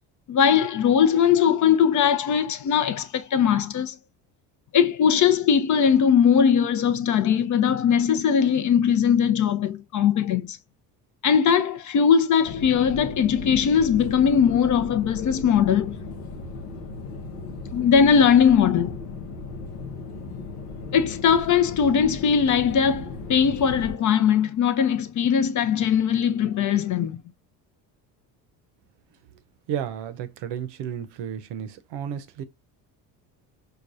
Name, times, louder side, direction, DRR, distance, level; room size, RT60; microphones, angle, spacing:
voice 1, 0.3-4.0 4.7-10.6 11.2-16.0 17.7-18.9 20.9-27.2, left 7 dB, 40° left, 0.5 m, -20 dB
sound 1, 12.4-24.0, left 3 dB, 90° left, 0.8 m, -36 dB
voice 2, 29.7-32.4, right 9 dB, 60° right, 0.7 m, -32 dB
4.8 x 2.3 x 2.4 m
hypercardioid pair, 65°, 47 cm